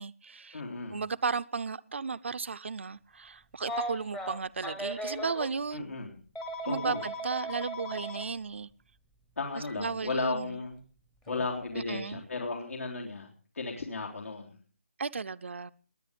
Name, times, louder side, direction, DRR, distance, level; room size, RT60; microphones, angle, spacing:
voice 1, 0.0-0.6 0.9-5.9 6.6-8.7 9.6-10.5 11.7-12.2 15.0-15.7, right 5 dB, 60° right, 0.5 m, -34 dB
voice 2, 0.5-1.0 5.7-6.2 6.7-7.0 9.4-10.8 11.3-14.6, left 3 dB, 85° left, 3.6 m, -35 dB
Telephone, 3.6-5.5 6.3-8.2 9.6-9.7 11.3-11.5, equal, 5° left, 0.8 m, -37 dB
20.5 x 9.0 x 5.1 m
hypercardioid pair, 170°, 7 cm